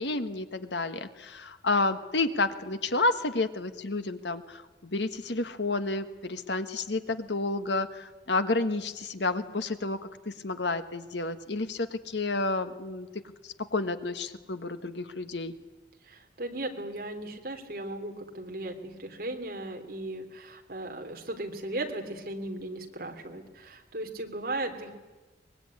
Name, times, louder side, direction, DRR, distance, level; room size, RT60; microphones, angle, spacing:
voice 1, 0.0-10.0 10.2-13.1 13.4-15.5, left 3 dB, 75° left, 9 dB, 1.5 m, -30 dB
voice 2, 16.0-24.9, right 1 dB, 55° right, 3 dB, 3.2 m, -37 dB
24.0 x 20.5 x 9.7 m, 1.2 s
head